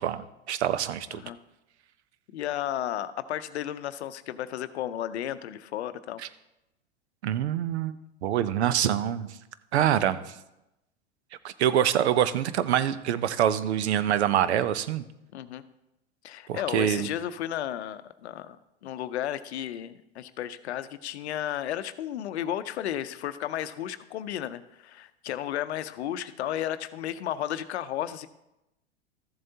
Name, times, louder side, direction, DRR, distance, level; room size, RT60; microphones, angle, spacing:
voice 1, 0.0-1.2 7.2-7.9 8.2-9.3 9.7-10.2 11.4-15.0 16.5-17.1, right 10 dB, 75° right, 14 dB, 0.7 m, -25 dB
voice 2, 2.3-6.2 15.3-15.6 16.2-18.6 18.8-28.3, left 11 dB, 75° left, 13 dB, 0.6 m, -33 dB
14.0 x 7.5 x 2.8 m, 0.91 s
hypercardioid pair, 100°, 34 cm